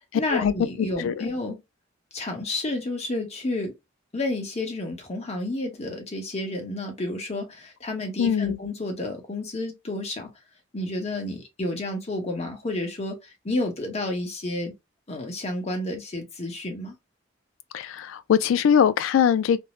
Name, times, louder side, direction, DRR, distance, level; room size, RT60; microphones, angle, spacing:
voice 1, 0.1-1.6 2.1-3.7 4.1-10.3 10.7-13.2 13.4-14.7 15.1-16.9, left 2 dB, 35° left, 0.9 m, -30 dB
voice 2, 1.0-1.3 8.2-8.6 17.7-19.6, left 8 dB, 85° left, 0.3 m, -22 dB
2.5 x 2.0 x 3.0 m
head